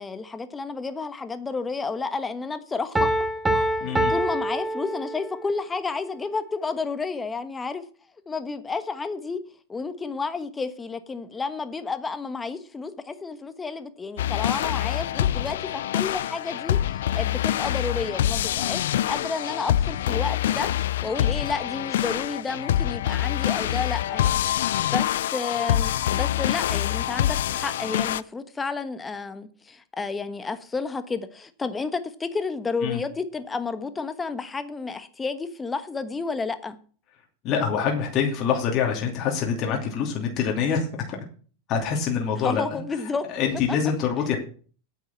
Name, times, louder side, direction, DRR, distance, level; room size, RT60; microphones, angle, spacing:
voice 1, 0.0-3.1 3.5-7.8 8.3-9.4 9.7-36.8 42.4-43.2 43.7-43.8, left 4 dB, 15° left, 1.3 m, -31 dB
Piano, 2.9-5.5, right 1 dB, 10° right, 1.2 m, -25 dB
voice 2, 3.8-4.1 32.8-33.0 37.4-41.2 41.7-42.8 43.3-44.4, left 7 dB, 45° left, 2.7 m, -25 dB
sound 1, 14.2-28.2, left 12 dB, 80° left, 0.4 m, -25 dB
9.4 x 6.0 x 8.3 m
supercardioid pair, 125°, 0 cm